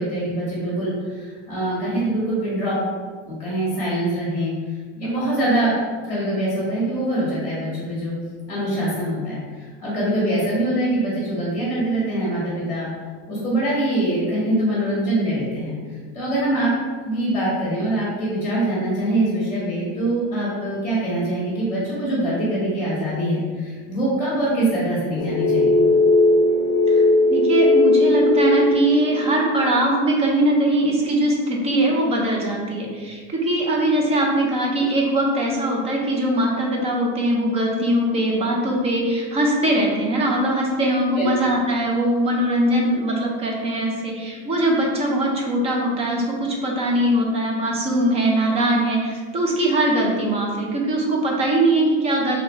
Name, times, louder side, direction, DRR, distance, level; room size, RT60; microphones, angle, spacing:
voice 1, 0.0-2.8 3.2-4.5 5.0-5.7 6.1-8.1 8.5-12.9 13.3-15.7 16.1-16.7 17.0-25.8 41.1-41.3, right 1 dB, 5° left, -8 dB, 1.1 m, -23 dB
sound 1, 25.2-29.4, left 2 dB, 55° left, 0.6 m, -17 dB
voice 2, 27.3-52.4, right 1 dB, 20° right, -1 dB, 0.4 m, -21 dB
3.1 x 2.4 x 4.2 m, 1.5 s
supercardioid pair, 155°, 35 cm